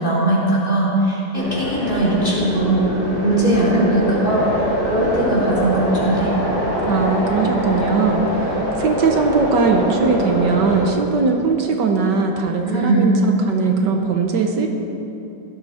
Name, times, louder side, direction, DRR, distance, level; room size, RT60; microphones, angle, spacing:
voice 1, 0.0-2.8 3.2-4.5 4.8-6.3 12.7-13.1, right 1 dB, 25° left, -7 dB, 4.1 m, -19 dB
sound 1, 1.3-10.9, equal, 80° left, 4.0 m, -23 dB
voice 2, 6.9-14.7, right 4 dB, 70° right, 3 dB, 1.6 m, -20 dB
17.0 x 12.5 x 4.3 m, 2.9 s
omnidirectional pair, 2.0 m